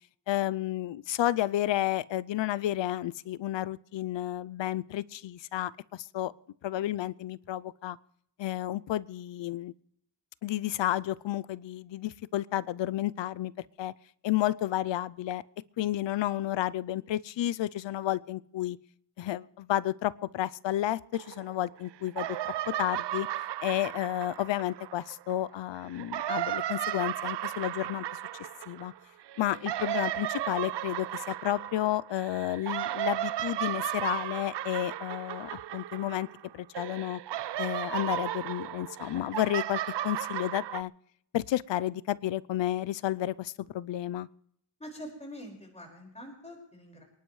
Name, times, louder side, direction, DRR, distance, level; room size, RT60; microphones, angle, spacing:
voice 1, 0.3-6.3 6.6-8.0 8.4-9.7 10.4-13.5 13.8-13.9 14.2-15.4 15.8-18.8 19.2-23.3 23.6-28.2 28.7-28.9 29.4-36.3 36.5-37.2 37.6-40.9 41.3-44.3, left 13 dB, 85° left, 20 dB, 0.6 m, -31 dB
sound 1, 21.1-21.8 22.1-25.3 25.9-36.5 36.7-40.8, right 13 dB, 70° right, 0.6 m, -35 dB
voice 2, 44.8-47.0, equal, 15° left, 0 dB, 5.4 m, -45 dB
28.5 x 11.0 x 3.2 m, 0.72 s
cardioid pair, 80°, 43 cm